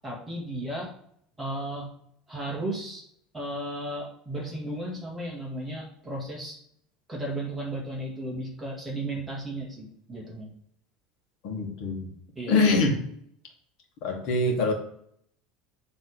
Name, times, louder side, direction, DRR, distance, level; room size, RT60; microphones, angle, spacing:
voice 1, 0.0-0.9 1.4-1.9 2.3-3.1 3.3-6.6 7.1-10.5 12.4-12.6, right 1 dB, 5° right, -3 dB, 1.8 m, -34 dB
voice 2, 11.4-12.1 12.5-13.0 14.0-14.7, left 3 dB, 45° left, 1 dB, 1.8 m, -24 dB
8.0 x 3.5 x 6.3 m, 0.68 s
cardioid pair, 175°, 0 cm